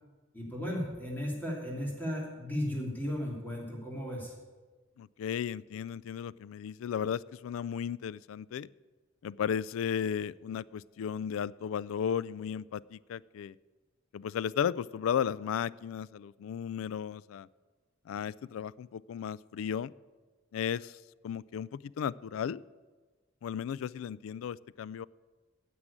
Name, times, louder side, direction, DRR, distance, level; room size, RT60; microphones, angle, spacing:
voice 1, 0.3-4.3, equal, 10° left, -3 dB, 2.8 m, -35 dB
voice 2, 5.0-8.7 9.2-13.5 14.1-17.5 18.1-19.9 20.5-21.0 21.2-22.6 23.4-25.1, left 8 dB, 85° left, 20 dB, 0.3 m, -35 dB
9.8 x 7.6 x 8.5 m, 1.4 s
head